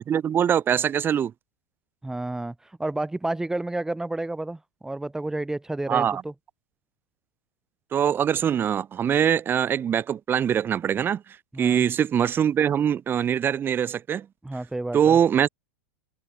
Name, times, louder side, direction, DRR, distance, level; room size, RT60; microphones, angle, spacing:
voice 1, 0.1-1.3 5.9-6.2 7.9-11.2 11.6-14.3 14.9-15.5, right 9 dB, 25° right, 1.2 m, -23 dB
voice 2, 2.0-6.3 11.5-11.8 14.4-15.2, right 2 dB, 5° right, 3.7 m, -31 dB
hypercardioid pair, 105°, 8 cm